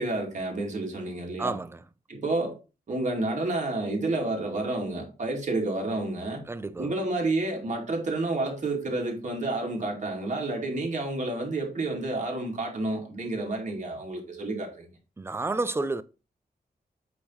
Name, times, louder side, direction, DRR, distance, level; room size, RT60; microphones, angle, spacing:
voice 1, 0.0-1.6 2.1-2.5 2.9-6.4 6.8-14.9, right 2 dB, 50° right, 2.2 m, -30 dB
voice 2, 1.4-1.8 6.5-6.9 15.2-16.0, right 3 dB, 15° right, 0.4 m, -30 dB
8.3 x 3.0 x 5.6 m
wide cardioid pair, 145°, 16 cm